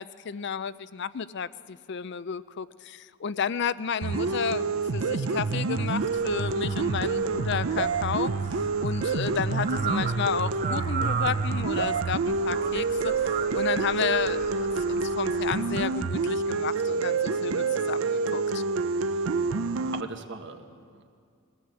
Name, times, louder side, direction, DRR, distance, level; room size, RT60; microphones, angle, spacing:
voice 1, 0.0-8.3 8.8-18.6, left 6 dB, 55° left, 15 dB, 0.4 m, -32 dB
sound 1, 4.0-20.0, right 4 dB, 80° right, 0.6 m, -27 dB
sound 2, 6.0-15.9, right 6 dB, 40° right, 0.9 m, -37 dB
voice 2, 19.1-19.4 19.8-21.1, right 3 dB, 60° right, 6 dB, 1.3 m, -41 dB
22.0 x 16.5 x 7.8 m, 2.3 s
head